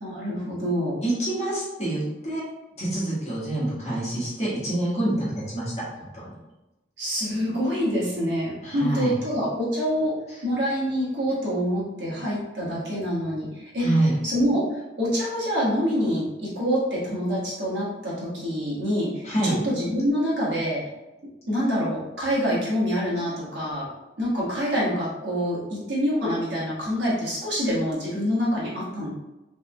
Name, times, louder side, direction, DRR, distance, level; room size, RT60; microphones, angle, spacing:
voice 1, 0.0-1.0 7.0-10.1 10.4-13.9 14.2-20.8 21.5-23.8 24.2-29.1, equal, 80° right, -6 dB, 1.4 m, -26 dB
voice 2, 1.0-2.4 2.8-5.7 6.1-6.4 8.6-9.1 13.8-14.1 19.2-19.5, right 1 dB, 35° left, -8 dB, 1.4 m, -26 dB
3.6 x 3.5 x 2.2 m, 1.0 s
head